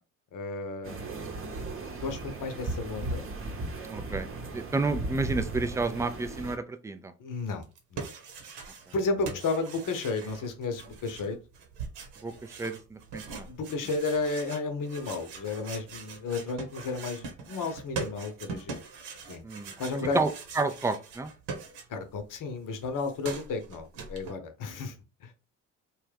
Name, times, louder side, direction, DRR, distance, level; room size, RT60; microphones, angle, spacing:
voice 1, 0.3-1.0 2.0-3.3 7.2-7.7 7.9-8.1 8.9-11.4 13.5-18.8 19.3-19.4 19.8-20.2 21.9-25.0 25.2-25.3, left 3 dB, 45° left, 6 dB, 0.9 m, -33 dB
sound 1, 0.8-6.6, right 2 dB, 30° right, 0.9 m, -36 dB
voice 2, 3.9-4.3 4.5-7.1 8.9-9.0 12.2-13.5 19.4-19.7 20.1-21.3, right 3 dB, 10° right, 9 dB, 0.3 m, -31 dB
sound 2, 7.6-9.0 9.2-22.2 22.5-24.3, right 5 dB, 70° right, 1.0 m, -42 dB
2.9 x 2.3 x 3.3 m, 0.32 s
hypercardioid pair, 55°, 43 cm